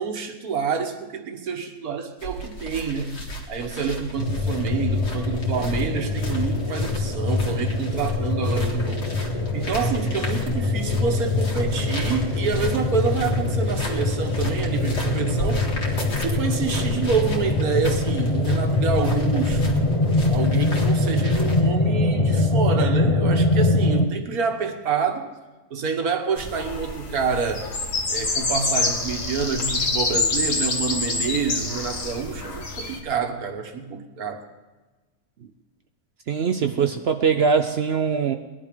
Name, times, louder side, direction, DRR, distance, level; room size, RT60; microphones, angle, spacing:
voice 1, 0.0-3.2 3.5-9.1 9.5-15.7 16.2-19.8 20.3-25.3 25.7-27.7 28.1-34.4, right 5 dB, 60° right, 6 dB, 1.6 m, -27 dB
sound 1, 2.2-21.6, equal, 70° left, 2.6 m, -35 dB
sound 2, 4.2-24.1, left 2 dB, 30° left, 0.6 m, -23 dB
sound 3, 26.4-33.0, left 3 dB, 50° left, 1.8 m, -26 dB
voice 2, 36.3-38.3, right 6 dB, 85° right, 7 dB, 0.5 m, -22 dB
19.5 x 11.0 x 5.2 m, 1.2 s
omnidirectional pair, 1.9 m